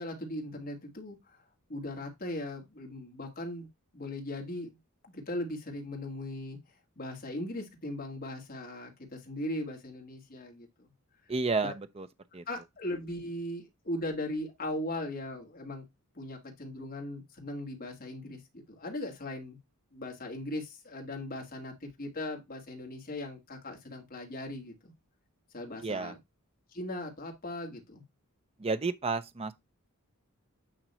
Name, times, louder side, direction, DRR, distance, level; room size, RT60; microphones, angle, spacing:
voice 1, 0.0-1.4 1.7-3.7 3.9-4.8 5.1-6.6 7.0-10.9 11.6-11.7 12.5-15.8 16.1-19.6 19.9-24.7 25.5-26.1 26.7-28.0, left 1 dB, 40° left, 2.0 m, -38 dB
voice 2, 11.3-12.1 12.3-12.4 25.8-26.1 28.6-29.5, right 4 dB, 25° right, 0.5 m, -31 dB
8.9 x 3.0 x 4.2 m
head